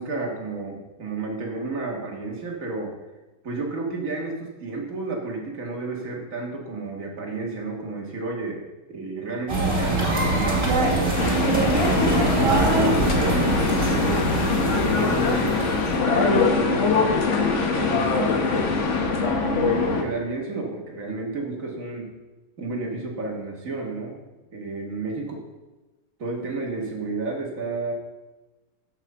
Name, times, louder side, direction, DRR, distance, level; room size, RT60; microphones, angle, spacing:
voice 1, 0.0-2.9 3.4-8.6 8.9-11.8 12.3-15.7 16.0-17.2 17.7-22.1 22.6-24.2 24.5-25.4 26.2-27.9, right 3 dB, 50° right, -1 dB, 2.0 m, -31 dB
sound 1, 9.5-16.0, right 2 dB, 30° right, 2.7 m, -23 dB
sound 2, 11.1-20.0, left 4 dB, 50° left, 1.2 m, -23 dB
7.4 x 6.0 x 6.7 m, 1.1 s
omnidirectional pair, 1.9 m